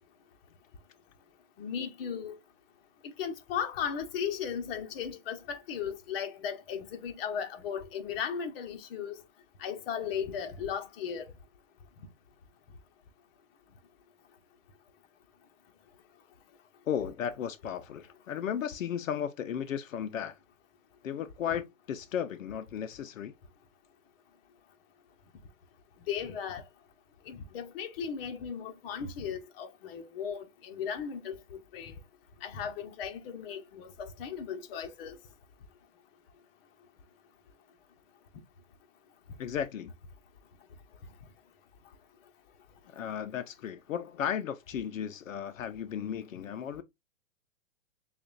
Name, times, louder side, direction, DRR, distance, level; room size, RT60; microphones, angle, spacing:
voice 1, 1.6-2.4 3.2-9.2 9.6-11.3 26.1-26.6 27.3-31.9 32.4-35.2, left 7 dB, 45° left, 1.0 m, -36 dB
voice 2, 16.9-20.4 21.0-23.3 39.4-39.9 42.9-46.8, left 8 dB, 90° left, 0.6 m, -35 dB
6.6 x 2.5 x 2.5 m
hypercardioid pair, 140°, 39 cm